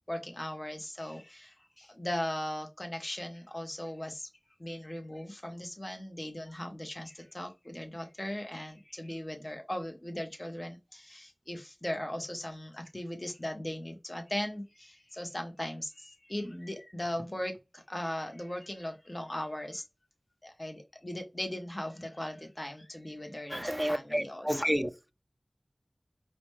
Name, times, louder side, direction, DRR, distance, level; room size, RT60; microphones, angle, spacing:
voice 1, 0.1-4.3 4.6-19.8 20.4-24.6, left 1 dB, 30° left, 0.8 m, -38 dB
voice 2, 23.5-25.1, equal, 10° right, 0.4 m, -31 dB
4.8 x 2.1 x 3.1 m
wide cardioid pair, 50°, 0 cm